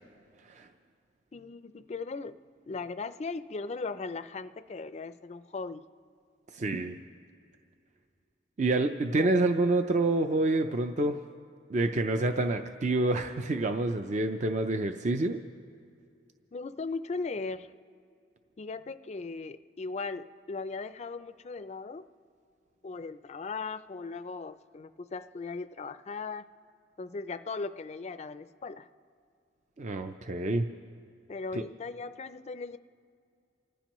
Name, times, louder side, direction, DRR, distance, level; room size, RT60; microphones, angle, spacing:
voice 1, 1.3-2.4 2.7-5.8 9.1-9.3 16.5-17.7 18.6-22.1 22.8-26.4 27.0-28.9 31.3-32.8, left 4 dB, 40° left, 12 dB, 0.4 m, -38 dB
voice 2, 6.5-7.0 8.6-11.2 11.7-15.4 29.8-30.7 31.5-31.6, right 2 dB, 40° right, 6 dB, 0.5 m, -27 dB
29.5 x 15.0 x 3.1 m, 2.4 s
head